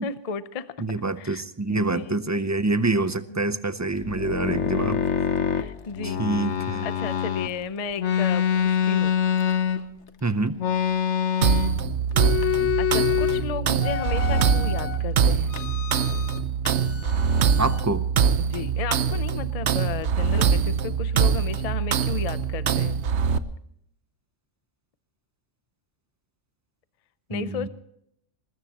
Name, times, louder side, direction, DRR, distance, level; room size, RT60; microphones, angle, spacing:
voice 1, 0.0-0.8 1.2-1.4 1.7-2.2 3.3-3.4 4.5-4.6 5.1-6.2 6.8-9.1 12.4-15.5 18.5-23.0 27.3-27.7, left 6 dB, 35° left, 13 dB, 0.7 m, -34 dB
voice 2, 0.8-5.0 6.0-6.9 10.2-10.6 17.6-18.0 27.3-27.7, right 3 dB, 20° right, 12 dB, 0.5 m, -26 dB
sound 1, 3.9-7.5 8.0-10.1 10.6-11.8 12.1-13.4 13.8-15.0 15.5-16.4 16.7-17.8, left 8 dB, 70° left, 1.3 m, -26 dB
sound 2, 11.4-23.4, right 7 dB, 65° right, 1.0 m, -23 dB
21.0 x 20.0 x 3.0 m, 0.72 s
omnidirectional pair, 1.3 m